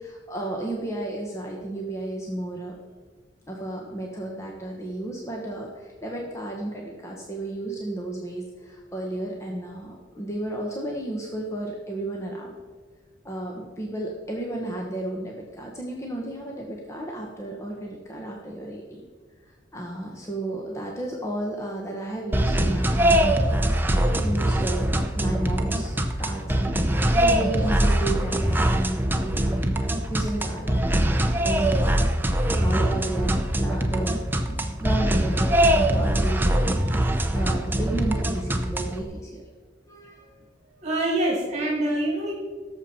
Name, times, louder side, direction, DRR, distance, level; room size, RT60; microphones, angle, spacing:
voice 1, 0.0-2.8 3.5-12.5 13.2-19.0 19.4-29.7 30.1-31.9 32.5-34.2 34.5-39.4 39.9-40.7, right 1 dB, 15° left, -1 dB, 1.2 m, -33 dB
sound 1, 22.3-39.0, right 1 dB, 10° right, 0.7 m, -23 dB
voice 2, 40.8-42.3, right 1 dB, 40° right, -2 dB, 2.4 m, -25 dB
17.0 x 7.2 x 4.3 m, 1.5 s
head